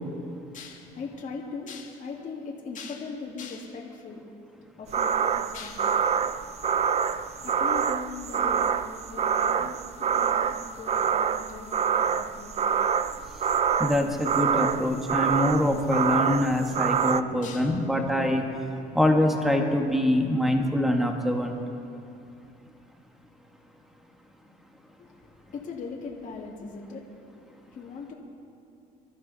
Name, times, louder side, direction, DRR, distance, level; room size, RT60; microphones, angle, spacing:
voice 1, 0.5-4.2 4.6-6.0 7.4-11.7 12.1-12.8 17.4-18.2 25.0-28.1, left 4 dB, 50° left, -3 dB, 2.3 m, -40 dB
sound 1, 4.9-17.2, right 7 dB, 40° right, 0.5 m, -26 dB
voice 2, 13.8-18.4 19.0-21.6, left 1 dB, ahead, 2 dB, 1.8 m, -24 dB
25.0 x 13.5 x 4.2 m, 2.6 s
cardioid pair, 110°, 17 cm